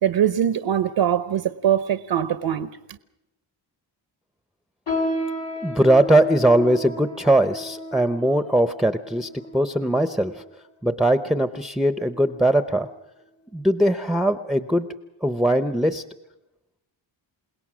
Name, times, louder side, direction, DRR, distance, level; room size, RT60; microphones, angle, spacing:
voice 1, 0.0-2.7, right 9 dB, 65° right, 0.9 m, -22 dB
sound 1, 4.9-10.5 11.2-11.3 12.1-12.4 12.8-12.9 13.6-13.7, left 1 dB, 80° left, 6.6 m, -32 dB
voice 2, 5.6-10.4 10.8-12.9 13.5-14.9 15.2-16.0, right 1 dB, ahead, 0.7 m, -20 dB
29.0 x 17.5 x 6.2 m
cardioid pair, 90°, 46 cm